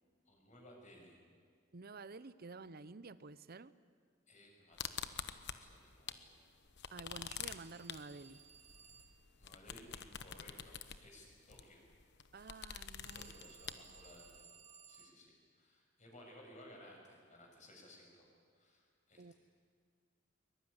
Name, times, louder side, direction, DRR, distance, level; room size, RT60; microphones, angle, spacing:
voice 1, 0.2-1.2 4.3-5.1 5.5-6.3 9.4-11.9 13.1-14.5 14.9-18.3 18.5-19.3, left 1 dB, 40° left, 0 dB, 6.7 m, -59 dB
voice 2, 1.7-3.7 6.9-8.4 12.3-13.4 19.2-19.3, right 3 dB, 50° right, 16 dB, 0.8 m, -51 dB
sound 1, 4.8-6.3 6.6-14.4, left 8 dB, 60° left, 1.1 m, -47 dB
Telephone, 7.0-9.3 13.0-15.2, right 6 dB, 35° right, 1.1 m, -61 dB
23.0 x 22.0 x 9.9 m, 2.1 s
head